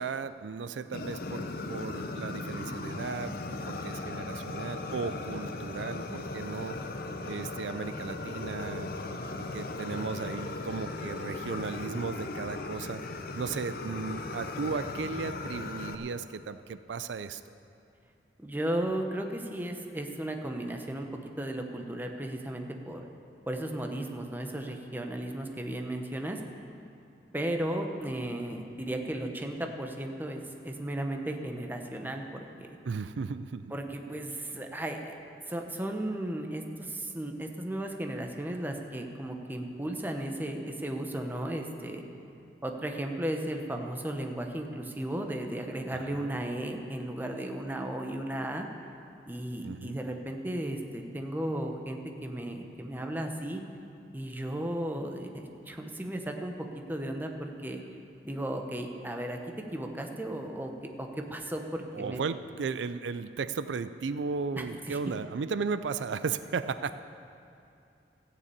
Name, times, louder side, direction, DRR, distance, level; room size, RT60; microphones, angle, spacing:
voice 1, 0.0-3.4 3.6-6.8 7.2-8.9 9.4-13.0 13.4-17.4 32.9-33.7 45.9-46.4 49.6-50.0 61.9-66.9, right 5 dB, 85° right, 12 dB, 0.4 m, -35 dB
Fire, 0.9-16.0, left 2 dB, 55° left, 0.8 m, -37 dB
voice 2, 18.4-21.1 21.4-23.0 23.5-26.4 27.3-32.7 33.7-35.1 35.5-42.0 42.6-48.7 49.3-53.6 54.1-56.5 56.9-57.8 58.2-59.4 59.7-60.7 61.0-62.2 64.6-65.0, right 1 dB, 10° right, 3 dB, 1.0 m, -35 dB
14.5 x 6.9 x 8.6 m, 2.6 s
head